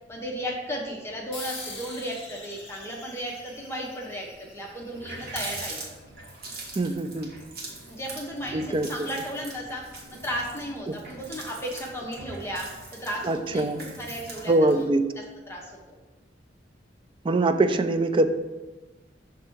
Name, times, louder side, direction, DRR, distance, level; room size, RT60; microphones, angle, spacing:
voice 1, 0.1-6.0 7.9-9.8 10.1-12.7 13.0-13.7 14.0-14.9 15.5-15.7, equal, 15° left, -2 dB, 0.8 m, -34 dB
sound 1, 1.3-6.3, left 2 dB, 30° left, 1.8 m, -44 dB
Water tap faucet, 4.4-4.5 4.8-14.9, right 2 dB, 55° right, 1.4 m, -42 dB
voice 2, 6.8-7.3 8.5-9.1 10.9-11.0 13.2-13.9 14.5-15.0 17.2-18.3, right 2 dB, 30° right, 8 dB, 0.3 m, -23 dB
6.7 x 3.5 x 4.5 m, 1.2 s
head